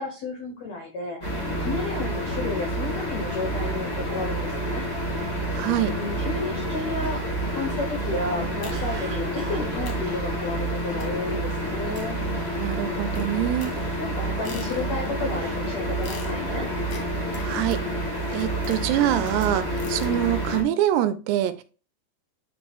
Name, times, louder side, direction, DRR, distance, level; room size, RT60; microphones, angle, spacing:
voice 1, 0.0-4.9 5.8-7.2 7.5-12.2 14.0-16.7, left 3 dB, 85° left, 1.5 m, -32 dB
sound 1, 1.2-20.6, right 1 dB, 30° left, 0.7 m, -29 dB
voice 2, 5.5-6.0 12.6-13.7 17.4-17.8 18.3-21.6, right 12 dB, 85° right, 2.6 m, -25 dB
Cough, 7.0-11.1 11.6-11.9 12.3-13.0 13.2-14.4 14.9-16.5, right 6 dB, 65° right, 1.6 m, -44 dB
sound 2, 8.6-9.1 9.5-9.6 9.9-10.2 11.0-11.3 11.9-12.7 13.1-15.2 16.0-20.2, left 4 dB, 70° left, 1.4 m, -45 dB
9.0 x 3.1 x 3.5 m
omnidirectional pair, 4.8 m